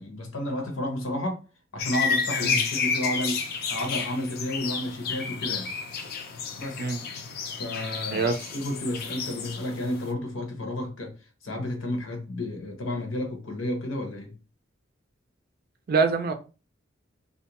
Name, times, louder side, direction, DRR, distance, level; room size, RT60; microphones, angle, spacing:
voice 1, 0.0-1.4 1.7-3.4 3.7-5.7 6.6-6.9 7.6-11.1 11.4-14.3, left 1 dB, 85° left, 0.9 m, -31 dB
sound 1, 1.8-10.1, left 5 dB, 50° left, 0.4 m, -31 dB
voice 2, 15.9-16.3, right 4 dB, 50° right, 0.4 m, -24 dB
2.5 x 2.2 x 2.9 m
head